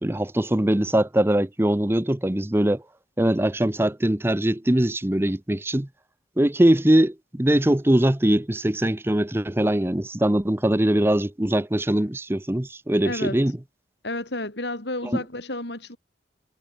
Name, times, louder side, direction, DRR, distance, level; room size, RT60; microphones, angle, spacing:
voice 1, 0.0-2.8 3.2-5.9 6.4-13.6 15.0-15.2, right 1 dB, 10° right, 0.7 m, -22 dB
voice 2, 13.0-13.4 14.0-16.0, left 2 dB, 65° left, 5.6 m, -31 dB
head